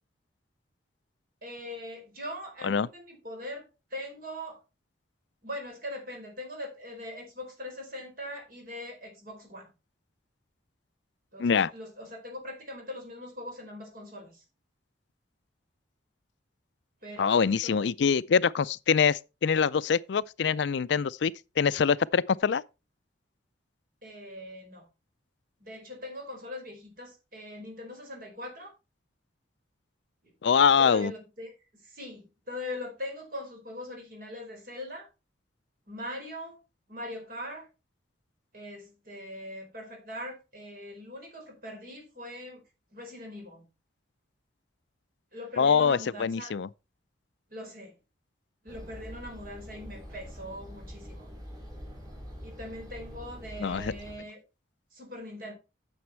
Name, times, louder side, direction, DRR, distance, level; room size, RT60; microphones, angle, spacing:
voice 1, 1.4-4.6 5.4-9.7 11.3-14.4 17.0-17.9 24.0-24.9 25.6-28.7 30.8-31.5 31.8-35.1 35.9-36.6 36.9-37.7 38.5-42.6 42.9-43.6 45.3-46.5 47.5-48.0 48.6-51.3 52.4-54.4 54.9-55.5, left 1 dB, 50° right, 4.8 m, -41 dB
voice 2, 11.4-11.7 17.2-22.6 30.4-31.1 45.6-46.7 53.6-53.9, left 6 dB, 70° left, 0.4 m, -24 dB
sound 1, 48.7-54.2, equal, 20° right, 4.2 m, -44 dB
9.5 x 7.0 x 4.4 m
head